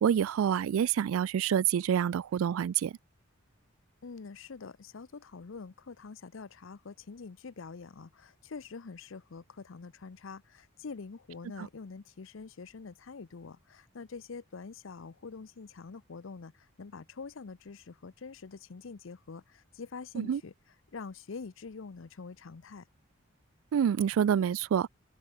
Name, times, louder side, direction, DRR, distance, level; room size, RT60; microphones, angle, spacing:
voice 1, 0.0-3.0 11.6-11.7 20.1-20.4 23.7-24.9, right 8 dB, 80° right, 0.3 m, -27 dB
voice 2, 4.0-20.5 20.9-22.9, left 4 dB, 65° left, 0.6 m, -45 dB
open air
head